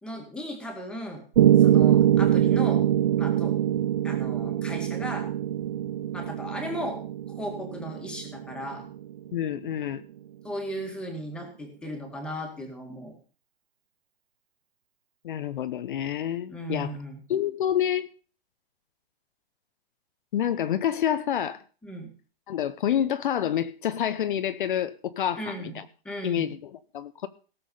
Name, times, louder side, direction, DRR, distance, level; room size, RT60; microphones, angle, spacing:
voice 1, 0.0-1.2 1.6-2.8 3.2-3.6 4.0-5.3 6.1-7.0 7.3-8.9 10.4-13.1 16.5-17.2 21.8-22.1 25.4-25.8 26.0-26.5, equal, 5° left, 2 dB, 2.0 m, -36 dB
Piano, 1.4-9.4, right 11 dB, 40° right, 0.5 m, -23 dB
voice 2, 9.3-10.0 15.2-16.9 17.3-18.1 20.3-21.6 22.5-25.8 26.2-27.3, left 10 dB, 55° left, 12 dB, 0.8 m, -28 dB
17.5 x 7.1 x 5.5 m, 0.39 s
hypercardioid pair, 165°, 31 cm